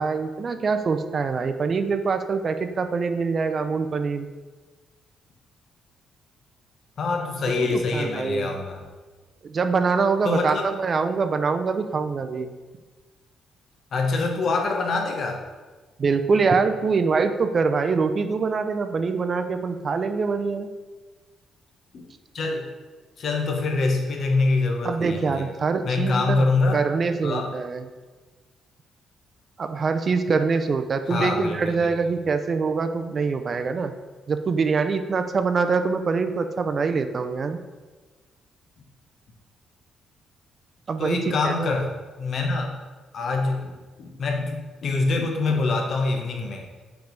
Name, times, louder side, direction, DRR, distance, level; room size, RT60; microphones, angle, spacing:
voice 1, 0.0-4.3 7.6-8.5 9.4-12.5 16.0-20.7 24.8-26.5 26.7-27.8 29.6-33.9 34.3-37.6 40.9-41.2 41.4-41.7, right 4 dB, 45° right, 8 dB, 0.5 m, -24 dB
voice 2, 7.0-8.8 10.2-10.6 13.9-15.4 21.9-22.0 22.3-22.6 23.2-25.5 25.8-26.8 27.2-27.5 31.1-31.9 41.0-41.9 42.2-42.7 43.1-46.7, left 3 dB, 55° left, 2 dB, 1.0 m, -25 dB
5.3 x 4.6 x 5.1 m, 1.3 s
cardioid pair, 90°, 0 cm